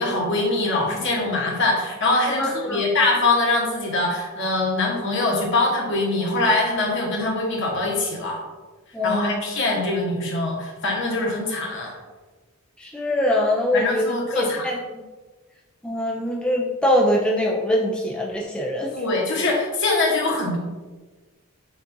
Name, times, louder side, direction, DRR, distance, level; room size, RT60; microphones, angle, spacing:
voice 1, 0.0-8.4 9.0-12.0 13.7-14.7 18.9-20.6, left 2 dB, 55° left, -2 dB, 1.0 m, -23 dB
voice 2, 2.4-2.8 8.9-9.5 12.8-14.8 15.8-18.9, left 1 dB, 5° left, -3 dB, 0.3 m, -23 dB
7.0 x 2.4 x 2.6 m, 1.3 s
head